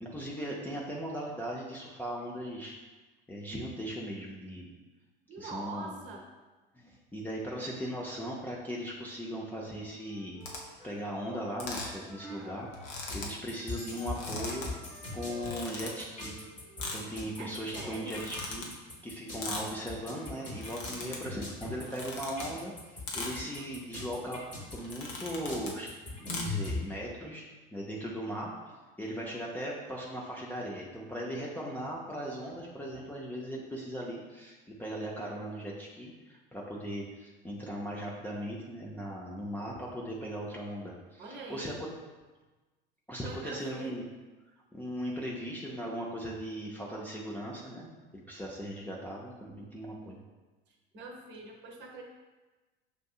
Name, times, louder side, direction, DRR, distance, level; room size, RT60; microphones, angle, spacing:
voice 1, 0.0-2.8 3.3-4.7 5.4-6.0 6.7-10.4 10.8-12.7 13.1-14.7 15.1-16.4 16.9-18.7 19.0-24.4 24.7-25.9 26.2-27.4 27.7-28.5 29.0-41.9 43.1-44.1 44.7-50.2, equal, 5° left, -5 dB, 0.5 m, -38 dB
voice 2, 5.3-6.3 12.2-12.6 17.4-18.3 41.2-41.8 43.2-44.0 50.9-52.0, right 3 dB, 40° right, 1 dB, 0.8 m, -43 dB
Wind instrument woodwind instrument, 9.9-13.1 13.5-16.9, left 3 dB, 80° left, 1.3 m, -52 dB
sound 1, 10.4-10.6 11.6-12.0 12.3-12.4 12.7-13.3 14.0-14.7 15.3-15.9 16.8-17.0 18.0-18.7 19.4-19.7 20.4-21.2 21.8-22.5 23.1-23.3 24.1-24.3 24.7-25.8 26.3-26.4, left 3 dB, 60° left, 0.8 m, -39 dB
sound 2, 13.1-26.8, left 2 dB, 25° left, 1.1 m, -40 dB
6.6 x 2.6 x 2.3 m, 1.2 s
figure-of-eight pair, 70°, 29 cm